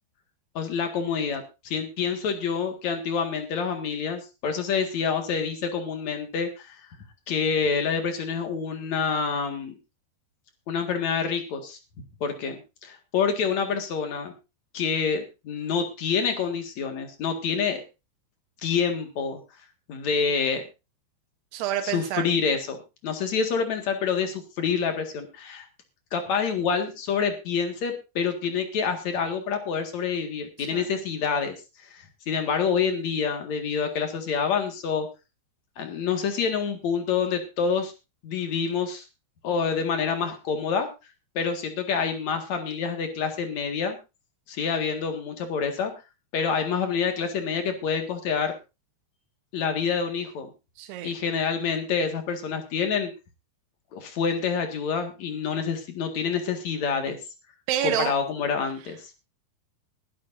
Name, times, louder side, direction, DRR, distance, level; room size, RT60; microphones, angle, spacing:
voice 1, 0.5-6.8 7.3-9.7 10.7-11.8 12.2-14.3 14.7-17.8 18.6-19.4 19.9-20.6 21.8-25.6 26.1-31.5 31.9-35.1 35.8-37.9 38.2-39.1 39.4-40.9 41.3-44.0 44.5-45.9 46.3-48.5 49.5-50.5 51.0-53.1 53.9-57.2 57.8-59.1, left 6 dB, 50° left, 6 dB, 2.4 m, -27 dB
voice 2, 21.5-22.3 30.6-30.9 50.8-51.1 57.7-58.1, right 10 dB, 70° right, 7 dB, 2.8 m, -28 dB
21.5 x 11.5 x 2.6 m, 0.28 s
omnidirectional pair, 5.2 m